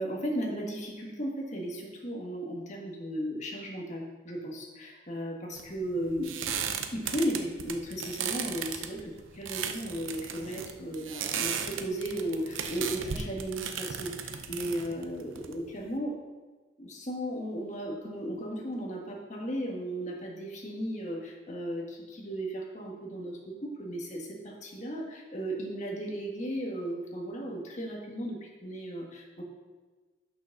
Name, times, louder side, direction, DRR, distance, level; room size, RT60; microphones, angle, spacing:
voice 1, 0.0-6.5 6.9-11.5 11.8-16.2 16.8-29.4, equal, 35° left, -1 dB, 1.6 m, -35 dB
sound 1, 5.6-15.9, right 7 dB, 85° right, 0.7 m, -36 dB
7.0 x 6.2 x 6.0 m, 1.3 s
head